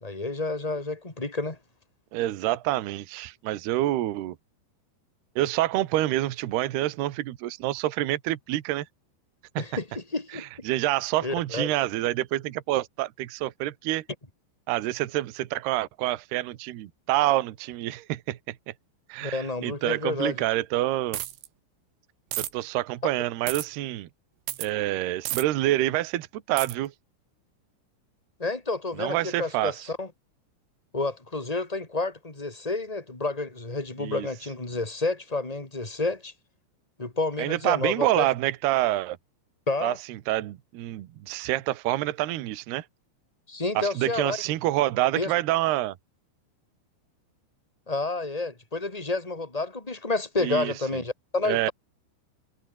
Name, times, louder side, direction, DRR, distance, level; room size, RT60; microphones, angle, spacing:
voice 1, 0.0-1.6 9.6-10.4 11.2-11.7 19.2-20.4 23.0-23.1 28.4-30.1 30.9-36.3 37.0-38.3 39.7-40.0 43.5-44.4 45.1-45.3 47.9-51.7, left 3 dB, 10° left, 2.8 m, -30 dB
voice 2, 2.1-4.4 5.4-8.9 10.3-14.0 14.7-18.6 19.1-21.2 22.4-24.1 24.6-26.9 29.0-29.9 34.0-34.3 37.4-39.2 39.8-42.8 43.8-46.0 50.4-50.7 51.4-51.7, right 15 dB, 70° right, 3.1 m, -27 dB
sound 1, 21.1-21.5 22.3-22.5 23.5-23.7 24.5-24.7 25.3-25.4 26.6-26.7, right 13 dB, 85° right, 4.3 m, -31 dB
omnidirectional pair, 5.3 m